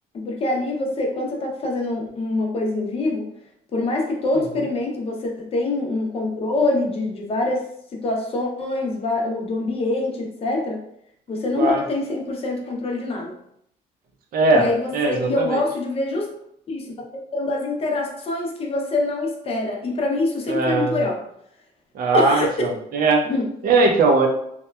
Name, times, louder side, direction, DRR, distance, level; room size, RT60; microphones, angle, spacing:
voice 1, 0.1-3.3 3.7-10.8 11.3-13.3 14.5-16.3 16.7-16.9 17.3-21.2 22.1-22.5 23.3-23.5, left 2 dB, 35° left, 0 dB, 0.6 m, -25 dB
voice 2, 14.3-15.6 20.5-21.0 21.9-23.3 23.6-24.3, right 3 dB, 60° right, 3 dB, 0.6 m, -19 dB
2.8 x 2.2 x 2.2 m, 0.72 s
cardioid pair, 110°, 17 cm